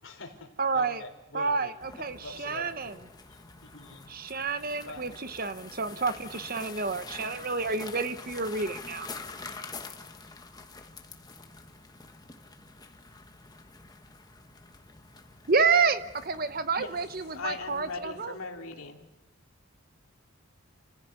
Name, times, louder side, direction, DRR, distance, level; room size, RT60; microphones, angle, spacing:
voice 1, 0.0-0.5 0.7-4.1 4.9-5.2, left 2 dB, 60° left, 2 dB, 4.3 m, -45 dB
voice 2, 0.6-1.0 1.3-2.9 4.1-9.1 15.5-18.3, right 4 dB, 40° right, 12 dB, 0.9 m, -29 dB
sound 1, 1.8-18.3, left 4 dB, 20° left, 1.3 m, -47 dB
voice 3, 17.3-19.0, left 4 dB, 80° left, 3 dB, 2.7 m, -38 dB
28.0 x 15.5 x 8.2 m, 1.1 s
head